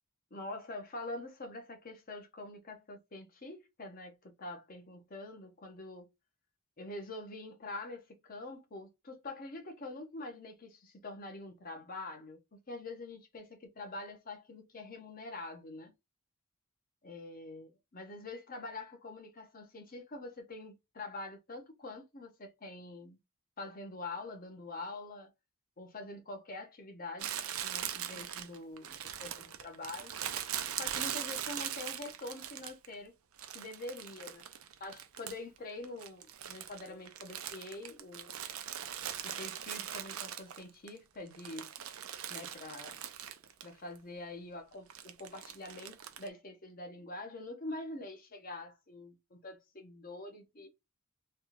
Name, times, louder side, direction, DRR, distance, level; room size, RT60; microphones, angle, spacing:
voice 1, 0.3-6.1 6.8-15.9 17.0-23.2 23.6-25.3 25.8-30.1 30.8-33.1 33.5-34.5 34.8-38.4 39.2-41.7 42.3-43.0 43.6-50.7, left 2 dB, 40° left, 0.9 m, -45 dB
Crumpling crinkling, 27.2-32.9 33.4-35.6 35.8-40.9 41.3-43.7 43.9-44.0 44.9-46.3, right 10 dB, 70° right, 0.5 m, -41 dB
3.4 x 2.3 x 2.8 m
head